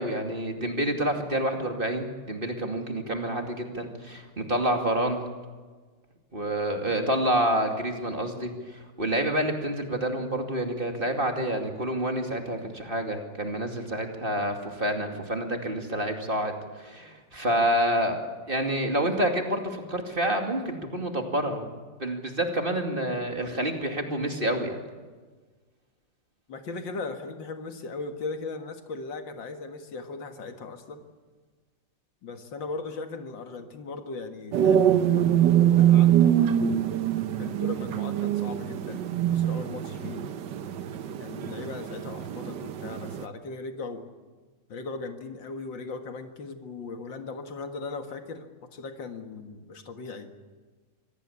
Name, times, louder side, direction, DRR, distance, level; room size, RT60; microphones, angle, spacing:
voice 1, 0.0-5.2 6.3-8.5 9.0-18.2 18.5-21.7 22.0-24.8, right 1 dB, 30° right, 4 dB, 2.6 m, -28 dB
voice 2, 26.5-31.1 32.2-35.4 35.7-36.7 37.4-39.0 39.3-40.3 41.1-44.1 44.7-50.3, left 3 dB, 80° left, 6 dB, 2.5 m, -38 dB
sound 1, 34.5-43.3, right 10 dB, 70° right, 1.5 m, -24 dB
25.0 x 18.0 x 8.7 m, 1.4 s
omnidirectional pair, 2.0 m